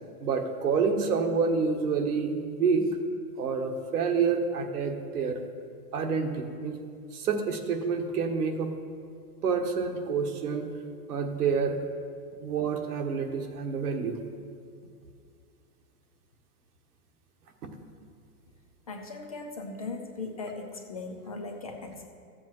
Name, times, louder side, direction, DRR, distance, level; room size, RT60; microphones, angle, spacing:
voice 1, 0.2-2.9 3.4-5.4 5.9-6.8 7.1-8.7 9.4-10.7 11.1-11.8 12.4-14.2, right 5 dB, 80° right, 4 dB, 1.5 m, -28 dB
voice 2, 18.9-22.0, left 3 dB, 25° left, 2 dB, 0.4 m, -38 dB
14.5 x 7.5 x 4.5 m, 2.2 s
supercardioid pair, 180°, 45 cm